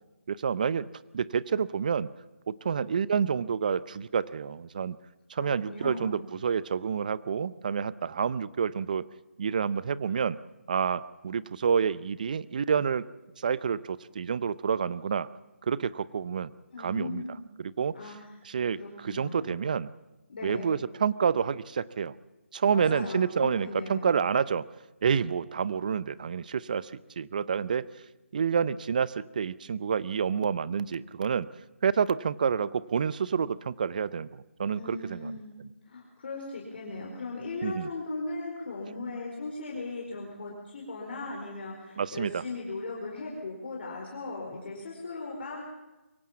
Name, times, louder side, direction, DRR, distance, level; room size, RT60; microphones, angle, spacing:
voice 1, 0.3-0.9 1.1-2.1 2.5-5.0 5.3-9.1 9.4-10.4 10.7-13.1 13.4-15.3 15.6-16.5 16.8-17.2 17.6-17.9 18.5-19.9 20.4-22.2 22.5-24.7 25.0-27.9 28.3-31.5 31.8-35.3 37.6-37.9 42.0-42.4, right 6 dB, 35° right, 19 dB, 0.6 m, -28 dB
voice 2, 5.4-6.2 16.7-17.4 17.9-18.3 18.8-19.5 20.3-20.7 22.7-24.1 34.7-35.5 35.9-45.7, left 3 dB, 45° left, -1 dB, 4.4 m, -38 dB
23.5 x 16.5 x 7.1 m, 1.1 s
figure-of-eight pair, 165°, 7 cm